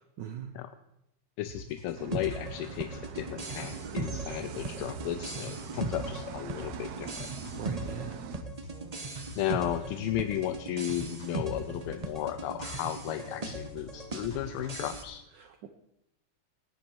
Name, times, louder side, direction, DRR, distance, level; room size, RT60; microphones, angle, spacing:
voice 1, 0.2-0.6 5.9-6.2 7.6-8.3 15.3-15.7, right 9 dB, 65° right, 7 dB, 1.3 m, -41 dB
voice 2, 1.4-7.3 9.4-15.2, left 12 dB, 80° left, 10 dB, 1.5 m, -34 dB
sound 1, 1.5-15.2, left 2 dB, 60° left, 4.4 m, -49 dB
sound 2, 1.9-8.4, right 9 dB, 85° right, 0.8 m, -44 dB
sound 3, 2.1-15.0, right 2 dB, 35° right, 0.6 m, -39 dB
17.5 x 10.5 x 4.5 m, 0.85 s
omnidirectional pair, 2.4 m